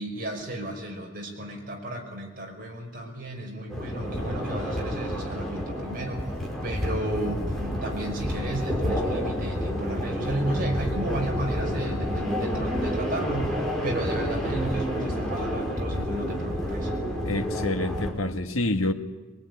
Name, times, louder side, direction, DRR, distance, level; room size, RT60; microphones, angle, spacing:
voice 1, 0.0-6.2 6.6-16.9, right 1 dB, 45° right, 1 dB, 5.4 m, -33 dB
sound 1, 3.7-18.1, equal, ahead, 4.9 m, -29 dB
voice 2, 17.2-18.9, left 2 dB, 85° left, 7 dB, 1.6 m, -27 dB
22.5 x 22.5 x 9.6 m, 1.3 s
head